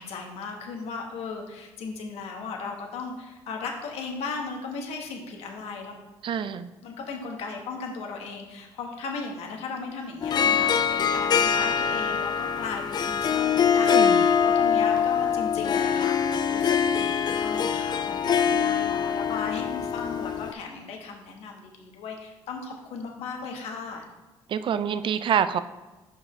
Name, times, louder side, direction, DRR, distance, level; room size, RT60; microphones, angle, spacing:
voice 1, 0.0-6.0 6.8-24.0, left 4 dB, 75° left, 2 dB, 1.2 m, -36 dB
voice 2, 6.2-6.7 13.9-14.2 24.5-25.6, right 8 dB, 50° right, 12 dB, 0.4 m, -26 dB
Harp, 10.2-20.5, left 7 dB, 40° left, 0.4 m, -24 dB
5.5 x 4.8 x 4.9 m, 1.2 s
supercardioid pair, 80°, 11 cm